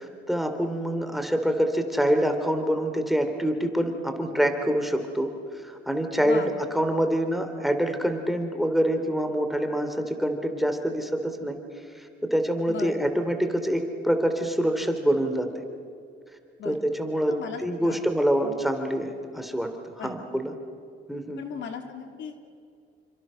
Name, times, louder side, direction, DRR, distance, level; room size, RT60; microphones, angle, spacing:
voice 1, 0.3-5.3 5.6-11.6 12.0-15.5 16.6-19.7 20.0-20.5 21.1-21.4, equal, ahead, 7 dB, 3.1 m, -26 dB
voice 2, 17.2-18.0 20.0-20.4 21.4-22.3, left 6 dB, 70° left, 5 dB, 3.0 m, -37 dB
28.5 x 25.0 x 6.5 m, 2.3 s
cardioid pair, 90°, 20 cm